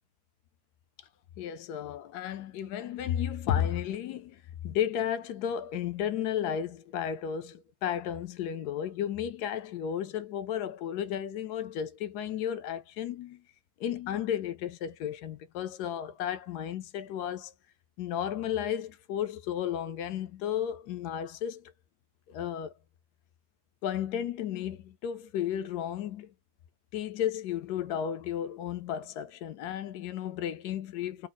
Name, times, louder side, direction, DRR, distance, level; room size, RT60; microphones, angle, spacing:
voice 1, 1.4-13.4 13.8-17.5 18.0-21.7 22.3-22.7 23.8-26.3 26.9-31.3, left 9 dB, 80° left, 1.1 m, -33 dB
3.6 x 2.0 x 3.9 m
omnidirectional pair, 1.7 m